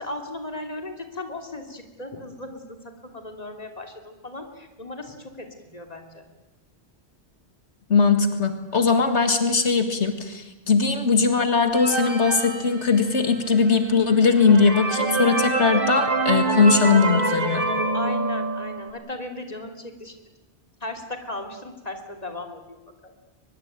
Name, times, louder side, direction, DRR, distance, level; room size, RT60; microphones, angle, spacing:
voice 1, 0.0-6.3 10.8-10.9 17.9-20.2 20.8-23.1, left 2 dB, 35° left, 4 dB, 3.1 m, -37 dB
voice 2, 7.9-17.7, left 4 dB, 85° left, 7 dB, 2.1 m, -20 dB
sound 1, 11.7-13.4 13.9-14.0 14.4-18.9, right 3 dB, 55° right, 3.4 m, -25 dB
23.0 x 21.5 x 8.9 m, 1.1 s
omnidirectional pair, 1.1 m